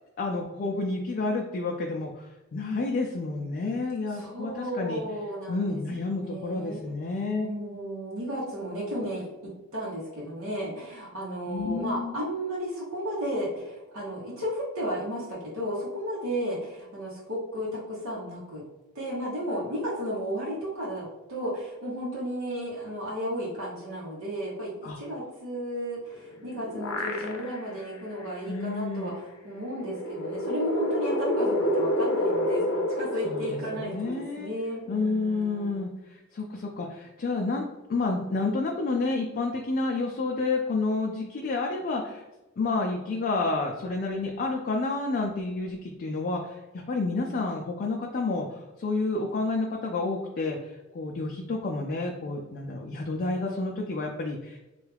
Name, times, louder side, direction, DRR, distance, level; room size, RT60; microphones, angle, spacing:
voice 1, 0.2-5.0 5.5-7.5 11.5-12.2 24.8-25.0 28.5-29.1 33.2-34.5 34.9-37.6 37.9-42.2 42.6-54.6, left 3 dB, 45° left, 1 dB, 0.4 m, -30 dB
voice 2, 4.1-6.8 7.4-18.6 18.9-35.8, equal, 90° right, -6 dB, 0.9 m, -34 dB
sound 1, 26.2-27.8 28.2-28.3 29.6-34.4, left 1 dB, 85° left, 0.6 m, -29 dB
3.2 x 2.3 x 3.3 m, 1.1 s
head